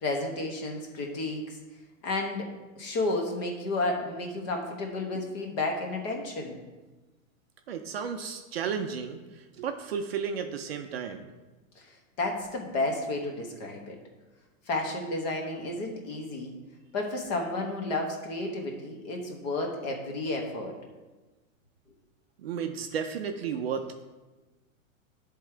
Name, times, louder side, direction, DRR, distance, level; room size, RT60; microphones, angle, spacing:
voice 1, 0.0-1.6 2.0-2.5 2.8-6.6 11.8-11.9 12.2-14.0 14.7-16.5 16.9-20.7, left 2 dB, 30° left, 2 dB, 1.1 m, -32 dB
voice 2, 7.7-11.3 22.4-24.1, right 7 dB, 45° right, 6 dB, 0.5 m, -33 dB
10.5 x 3.7 x 4.4 m, 1.2 s
hypercardioid pair, 165°, 42 cm